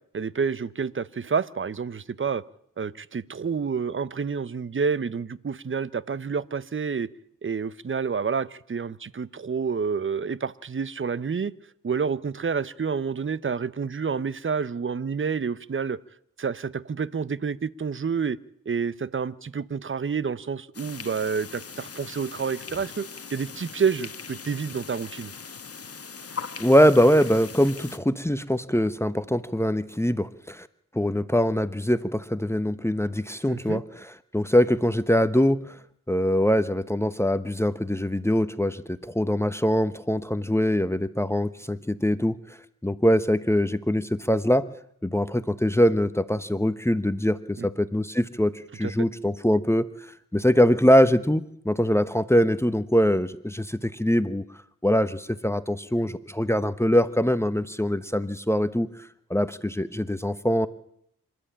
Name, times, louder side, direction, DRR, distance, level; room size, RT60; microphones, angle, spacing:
voice 1, 0.1-2.4 2.8-7.1 7.4-11.5 11.8-16.0 16.4-18.4 18.7-25.3 33.5-33.8 47.6-47.7 48.8-48.9, right 6 dB, 35° right, 19 dB, 0.8 m, -29 dB
sound 1, 20.7-28.0, left 5 dB, 45° left, 1.3 m, -40 dB
voice 2, 26.6-30.7 30.9-33.8 34.3-35.8 36.1-42.4 42.8-44.7 45.0-49.9 50.3-54.4 54.8-58.9 59.3-60.7, equal, 10° left, 14 dB, 1.0 m, -23 dB
26.0 x 13.0 x 8.8 m, 0.71 s
cardioid pair, 65°, 34 cm